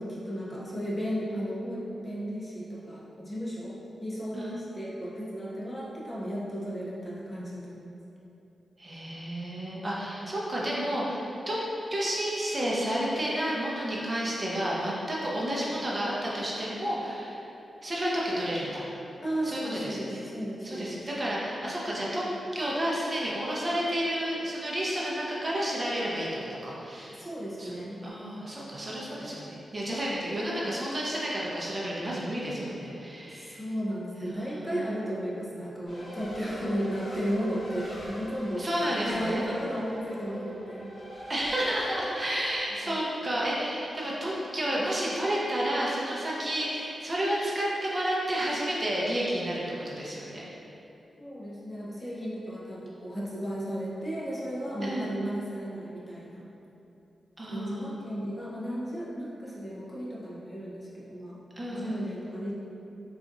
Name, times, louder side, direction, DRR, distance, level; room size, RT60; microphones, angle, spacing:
voice 1, 0.0-8.0 19.2-21.1 27.1-28.0 33.3-38.7 39.0-40.9 42.8-43.0 51.2-56.5 57.4-61.4 61.7-62.5, equal, 25° left, -7 dB, 0.8 m, -34 dB
voice 2, 8.8-11.6 11.9-17.4 17.8-18.8 19.4-20.2 20.6-22.2 22.5-27.2 27.6-27.7 28.0-33.6 34.2-34.8 38.6-39.4 41.3-50.4 54.8-55.1 57.4-57.9 61.6-62.1, equal, 35° right, -5 dB, 0.6 m, -31 dB
Race car auto racing, 35.8-42.6, equal, 50° left, 1.3 m, -41 dB
4.0 x 2.4 x 2.5 m, 2.9 s
cardioid pair, 60°, 0 cm